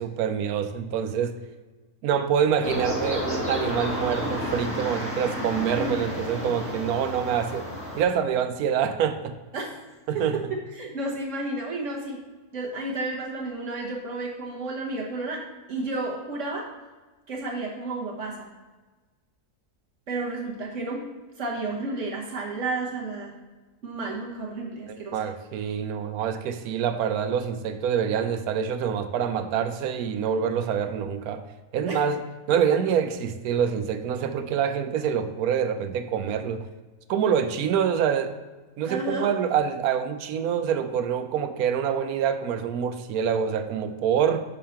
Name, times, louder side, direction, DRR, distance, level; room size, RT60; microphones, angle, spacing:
voice 1, 0.0-1.3 2.0-7.6 7.9-9.3 10.1-10.4 24.9-31.4 31.7-32.2 32.5-36.6 37.1-38.3 38.8-44.4, right 8 dB, 75° right, 9 dB, 1.1 m, -26 dB
sound 1, 2.6-8.0, left 1 dB, 10° left, 1.6 m, -31 dB
voice 2, 5.7-6.1 9.5-9.7 10.7-12.2 12.5-15.4 15.7-16.7 17.3-18.5 20.1-21.0 21.4-23.3 23.8-25.2 31.8-32.0 38.8-39.3, right 2 dB, 55° right, -2 dB, 1.4 m, -31 dB
6.4 x 5.4 x 4.3 m, 1.3 s
omnidirectional pair, 1.6 m